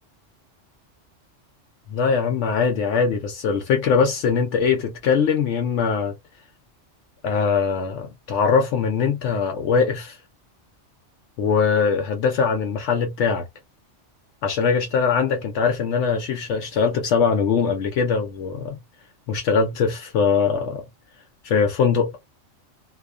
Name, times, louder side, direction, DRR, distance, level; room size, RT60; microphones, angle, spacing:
voice 1, 1.9-6.2 7.2-10.2 11.4-13.5 14.4-18.8 19.3-20.8 21.4-22.2, left 5 dB, 75° left, 0.9 m, -21 dB
2.4 x 2.4 x 2.2 m
omnidirectional pair, 1.2 m